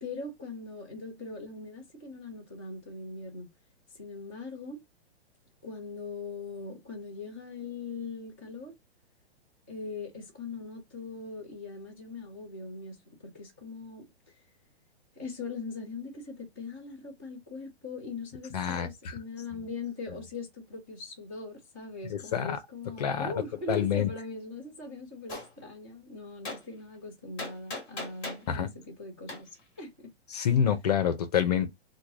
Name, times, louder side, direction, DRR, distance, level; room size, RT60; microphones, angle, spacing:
voice 1, 0.0-3.5 3.9-4.8 5.6-8.7 9.7-14.4 15.2-30.1, left 3 dB, 15° right, 0.3 m, -41 dB
voice 2, 18.5-18.9 22.1-22.6 23.0-23.3 23.7-24.1 28.5-28.7 30.3-31.7, left 8 dB, 40° left, 0.5 m, -26 dB
Gunshot gunfire, 25.3-25.5 26.4-26.6 27.4-28.5 29.3-29.4, left 2 dB, 15° left, 1.2 m, -37 dB
3.1 x 2.2 x 3.6 m
hypercardioid pair, 170°, 33 cm